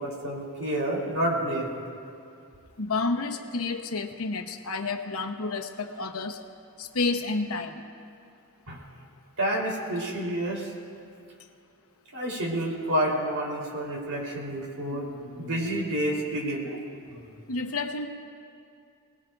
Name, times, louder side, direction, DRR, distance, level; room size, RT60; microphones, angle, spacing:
voice 1, 0.0-2.0 8.7-8.8 9.4-10.7 12.1-16.8 17.1-17.3, right 1 dB, 75° right, -3 dB, 3.9 m, -29 dB
voice 2, 2.8-6.4 6.8-7.8 17.5-18.1, left 3 dB, 70° left, 5 dB, 1.0 m, -30 dB
28.0 x 19.5 x 2.6 m, 2.5 s
head